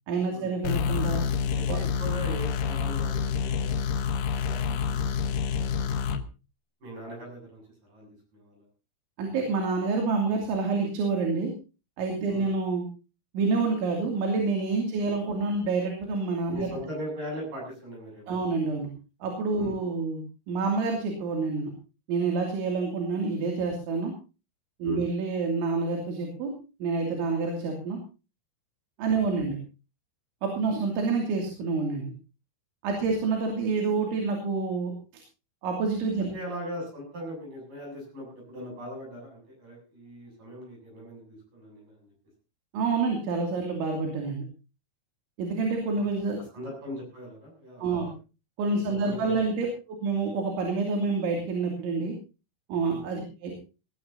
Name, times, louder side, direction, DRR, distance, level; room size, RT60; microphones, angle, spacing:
voice 1, 0.1-1.2 1.7-1.8 9.2-11.5 12.0-12.9 13.3-16.8 18.3-18.9 19.2-21.7 22.1-24.1 24.8-26.5 26.8-28.0 29.0-29.6 30.4-32.1 32.8-35.2 35.6-36.3 42.7-44.4 45.4-46.4 47.8-48.1 48.6-52.1 52.7-53.6, right 4 dB, 75° right, 1 dB, 5.0 m, -28 dB
sound 1, 0.6-6.2, left 6 dB, 85° left, 1.9 m, -28 dB
voice 2, 1.5-3.8 4.1-6.2 6.8-8.7 12.3-12.5 16.5-18.4 19.6-19.8 24.8-25.0 29.1-29.2 36.3-42.1 45.9-46.1 46.4-48.1 48.9-49.4 52.9-53.1, equal, 45° right, 0 dB, 9.0 m, -40 dB
18.5 x 18.0 x 2.8 m, 0.32 s
omnidirectional pair, 5.6 m